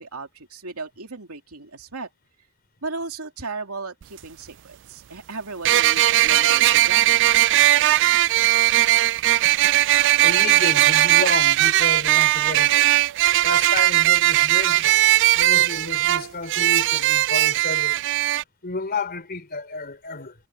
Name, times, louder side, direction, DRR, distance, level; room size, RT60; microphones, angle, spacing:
voice 1, 0.0-2.1 2.8-7.4, right 3 dB, 90° right, 2.7 m, -36 dB
sound 1, 4.0-4.1 5.6-18.4, right 14 dB, 55° right, 0.4 m, -18 dB
voice 2, 10.2-12.9 13.4-15.0 15.4-18.0 18.6-20.3, left 3 dB, 45° left, 3.7 m, -31 dB
head